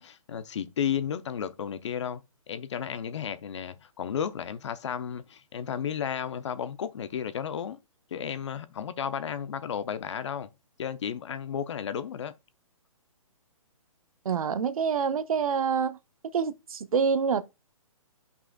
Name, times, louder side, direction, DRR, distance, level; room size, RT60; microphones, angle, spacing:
voice 1, 0.0-7.8 8.1-10.5 10.8-12.3, left 8 dB, 55° left, 0.7 m, -33 dB
voice 2, 14.2-16.0 16.3-17.4, right 6 dB, 75° right, 0.7 m, -26 dB
11.0 x 5.4 x 2.3 m
hypercardioid pair, 165°, 18 cm